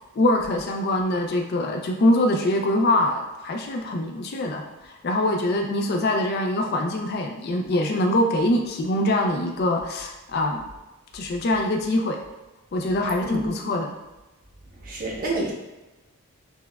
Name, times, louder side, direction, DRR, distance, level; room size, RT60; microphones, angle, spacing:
voice 1, 0.2-10.7 11.1-12.2 12.7-13.9, left 1 dB, 45° left, 1 dB, 0.4 m, -24 dB
voice 2, 13.2-13.6 14.8-15.5, right 1 dB, 40° right, -3 dB, 0.7 m, -28 dB
6.0 x 2.2 x 2.2 m, 1.1 s
head